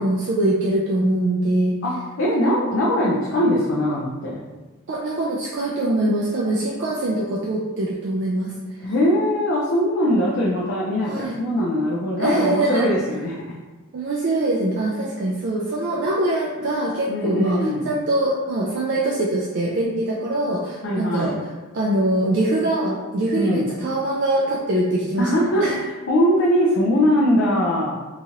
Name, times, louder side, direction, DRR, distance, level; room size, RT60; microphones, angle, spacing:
voice 1, 0.0-1.7 4.9-8.5 8.8-8.9 11.0-11.4 12.2-12.9 13.9-21.5 21.7-25.3 25.6-25.8, right 1 dB, 50° right, -4 dB, 0.3 m, -23 dB
voice 2, 1.8-4.4 8.8-13.4 17.1-17.9 20.8-21.5 23.4-23.6 25.2-28.0, equal, 55° left, -5 dB, 0.4 m, -21 dB
2.9 x 2.4 x 2.9 m, 1.2 s
head